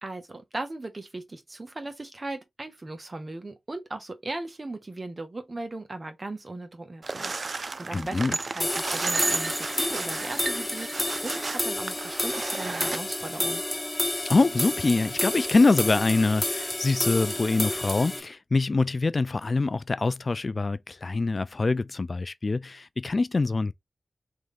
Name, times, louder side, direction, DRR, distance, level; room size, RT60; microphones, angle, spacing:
voice 1, 0.0-13.6, right 2 dB, 40° right, 1.2 m, -38 dB
sound 1, 7.0-13.0, right 3 dB, 60° right, 0.4 m, -32 dB
voice 2, 7.9-8.3 14.2-23.7, left 3 dB, 50° left, 0.3 m, -24 dB
sound 2, 8.6-18.2, left 1 dB, 20° left, 1.9 m, -30 dB
3.7 x 3.2 x 3.4 m
cardioid pair, 55°, 0 cm